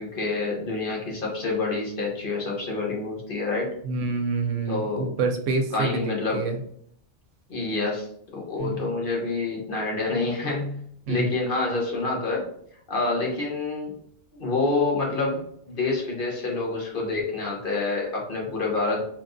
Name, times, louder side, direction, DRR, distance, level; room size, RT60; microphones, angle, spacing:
voice 1, 0.0-3.7 4.7-5.1 5.7-6.4 7.5-8.1 8.3-12.5 12.9-13.9 14.3-19.0, left 3 dB, 50° left, -1 dB, 1.1 m, -27 dB
voice 2, 3.8-6.6 8.6-8.9 11.1-11.3, right 3 dB, 90° right, 5 dB, 1.0 m, -27 dB
4.2 x 3.0 x 2.6 m, 0.66 s
omnidirectional pair, 1.2 m